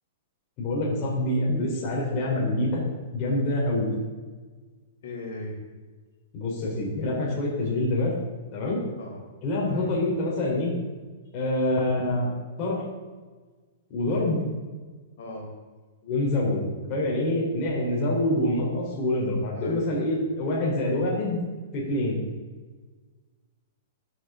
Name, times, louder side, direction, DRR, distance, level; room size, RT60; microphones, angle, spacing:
voice 1, 0.6-2.8 3.1-3.9 6.3-8.1 8.5-8.8 9.4-10.7 11.3-12.3 12.6-12.8 13.9-14.4 16.0-21.4 21.7-22.2, left 1 dB, 30° left, -4 dB, 4.0 m, -26 dB
voice 2, 5.0-5.6 9.0-9.2 9.7-9.9 15.2-15.5 19.5-19.9, left 2 dB, 65° left, -1 dB, 4.1 m, -38 dB
13.0 x 12.5 x 3.9 m, 1.4 s
hypercardioid pair, 170°, 0 cm